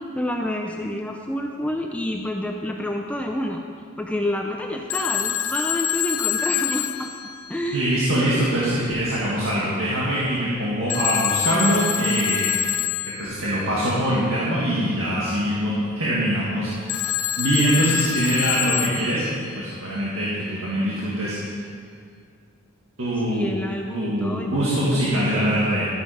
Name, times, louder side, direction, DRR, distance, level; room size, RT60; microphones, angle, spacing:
voice 1, 0.0-3.6 4.0-7.1 7.5-8.0 23.3-24.7 25.1-25.6, left 1 dB, 5° left, 2 dB, 0.5 m, -28 dB
Telephone, 4.9-8.0 10.9-13.5 16.9-19.6, left 11 dB, 85° left, 0.5 m, -26 dB
voice 2, 7.7-12.5 13.2-17.0 17.3-21.6 23.0-23.6 23.9-25.9, right 1 dB, 70° right, -8 dB, 1.9 m, -23 dB
12.5 x 9.2 x 5.0 m, 2.3 s
head